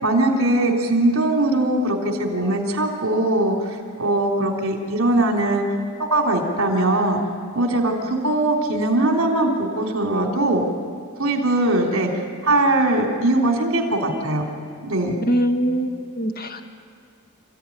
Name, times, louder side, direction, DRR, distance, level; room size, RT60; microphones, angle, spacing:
voice 1, 0.0-5.6 6.0-7.2 7.5-10.6 11.2-12.1 12.4-14.5 14.8-15.2, right 2 dB, 65° right, 1 dB, 3.2 m, -21 dB
voice 2, 15.3-16.6, equal, 45° left, 5 dB, 1.5 m, -22 dB
27.5 x 15.5 x 10.0 m, 2.2 s
head